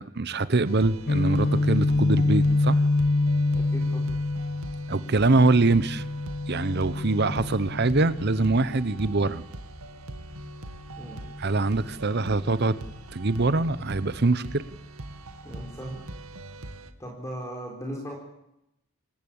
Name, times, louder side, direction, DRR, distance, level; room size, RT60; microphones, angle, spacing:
voice 1, 0.0-2.8 4.9-6.0 6.5-9.4 11.4-12.8 13.1-14.6, right 3 dB, 50° right, 15 dB, 0.9 m, -23 dB
sound 1, 0.6-16.9, right 1 dB, 85° right, 2.1 m, -42 dB
Guitar, 1.1-8.9, left 2 dB, 50° left, 1.4 m, -26 dB
voice 2, 3.5-4.1 11.0-11.2 15.4-16.0 17.0-18.2, equal, 15° left, 0 dB, 4.4 m, -38 dB
27.5 x 14.5 x 8.7 m, 0.82 s
head